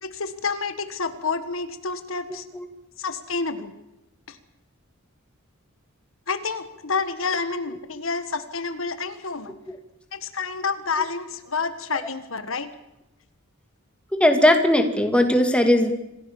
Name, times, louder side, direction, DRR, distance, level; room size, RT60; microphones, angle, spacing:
voice 1, 0.0-2.4 3.0-3.7 4.3-4.4 6.3-9.6 10.1-12.7, left 4 dB, 65° left, 10 dB, 1.5 m, -29 dB
voice 2, 14.2-15.9, left 1 dB, 5° left, 5 dB, 2.3 m, -18 dB
26.5 x 16.0 x 7.2 m, 0.91 s
head